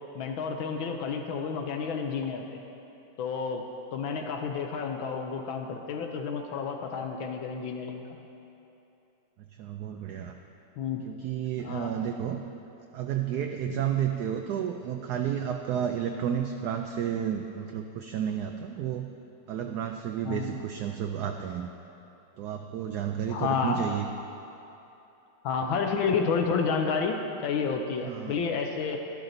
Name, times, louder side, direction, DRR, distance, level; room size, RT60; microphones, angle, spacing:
voice 1, 0.1-2.6 3.2-3.6 3.9-8.0 10.8-11.0 11.6-11.9 13.7-13.9 20.2-20.6 23.3-23.8 25.4-29.0, left 5 dB, 75° left, 3 dB, 1.5 m, -30 dB
voice 2, 9.6-10.4 11.0-12.4 12.9-19.1 19.5-21.7 22.4-24.1 28.0-28.4, right 9 dB, 80° right, 4 dB, 0.9 m, -31 dB
12.0 x 11.5 x 3.9 m, 2.9 s
omnidirectional pair, 2.2 m